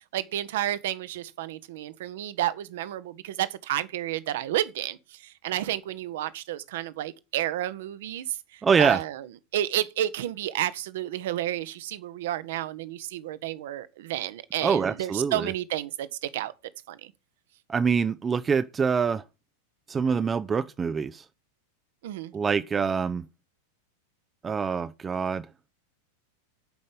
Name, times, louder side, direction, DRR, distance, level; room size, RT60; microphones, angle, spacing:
voice 1, 0.1-8.3 8.5-9.2 9.5-16.5 16.9-17.1 22.0-22.3, right 13 dB, 55° right, 0.9 m, -31 dB
voice 2, 8.6-9.0 14.6-15.5 17.7-19.2 19.9-21.2 22.3-23.2 24.4-25.5, right 6 dB, 20° right, 0.5 m, -25 dB
10.5 x 5.4 x 7.6 m
figure-of-eight pair, 90°, 0 cm